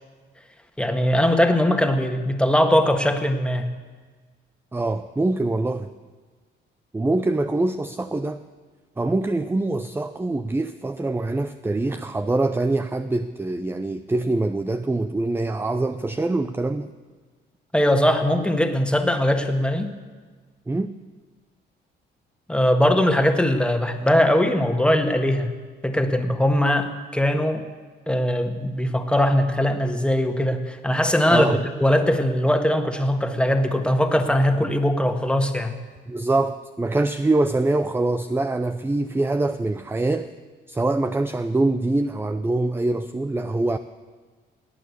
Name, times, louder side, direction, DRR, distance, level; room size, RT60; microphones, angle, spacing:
voice 1, 0.8-3.7 17.7-19.9 22.5-25.5 25.8-27.6 28.1-35.7, left 1 dB, 5° left, 6 dB, 1.6 m, -20 dB
voice 2, 4.7-5.9 6.9-8.4 9.0-16.9 20.7-20.9 31.3-31.6 36.1-40.3 40.7-43.8, right 2 dB, 10° right, 11 dB, 0.5 m, -24 dB
19.0 x 9.0 x 8.4 m, 1.4 s
cardioid pair, 90°, 20 cm